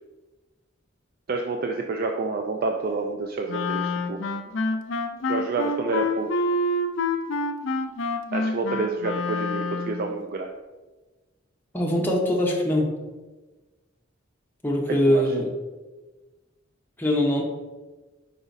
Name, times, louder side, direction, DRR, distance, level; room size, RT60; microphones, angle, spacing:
voice 1, 1.3-4.2 5.3-6.4 8.3-10.5 15.1-15.3, right 3 dB, 50° right, 3 dB, 0.4 m, -28 dB
Wind instrument woodwind instrument, 3.5-10.1, left 2 dB, 70° left, 0.5 m, -27 dB
voice 2, 11.7-12.9 14.6-15.5 17.0-17.4, left 1 dB, 10° left, -2 dB, 0.9 m, -22 dB
5.0 x 4.8 x 4.0 m, 1.2 s
head